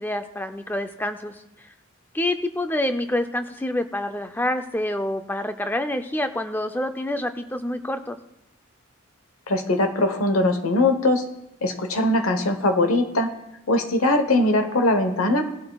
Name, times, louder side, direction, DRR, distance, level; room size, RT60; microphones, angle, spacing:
voice 1, 0.0-1.3 2.1-8.2, left 1 dB, 10° left, 8 dB, 0.4 m, -27 dB
voice 2, 9.5-11.2 11.6-13.3 13.7-15.5, left 2 dB, 85° left, 7 dB, 1.0 m, -21 dB
18.0 x 11.5 x 2.3 m, 0.88 s
head